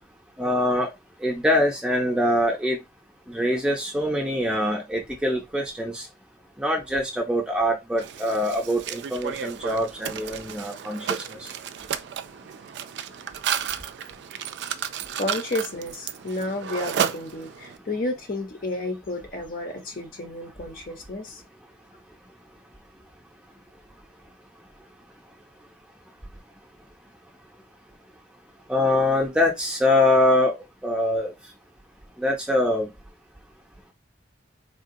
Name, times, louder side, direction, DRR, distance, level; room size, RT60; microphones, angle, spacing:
voice 1, 0.4-0.9 1.2-2.8 3.3-6.1 6.6-11.5 28.7-30.6 30.8-31.3 32.2-32.9, left 1 dB, 5° right, 0.6 m, -24 dB
Mechanisms, 8.0-17.8, right 8 dB, 65° right, 0.3 m, -32 dB
voice 2, 15.2-21.4, left 2 dB, 50° left, 0.7 m, -31 dB
3.6 x 2.2 x 2.6 m
head